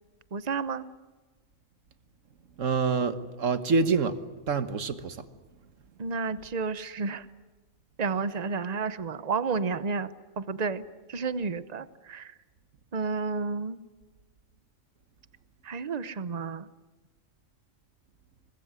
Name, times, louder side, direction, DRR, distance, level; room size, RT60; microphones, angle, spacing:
voice 1, 0.3-0.9 6.0-7.3 8.0-12.3 12.9-13.8 15.6-16.7, right 4 dB, 35° right, 1.0 m, -31 dB
voice 2, 2.6-4.2 4.5-5.3, right 4 dB, 90° right, 1.7 m, -26 dB
24.0 x 21.0 x 9.6 m
omnidirectional pair, 1.3 m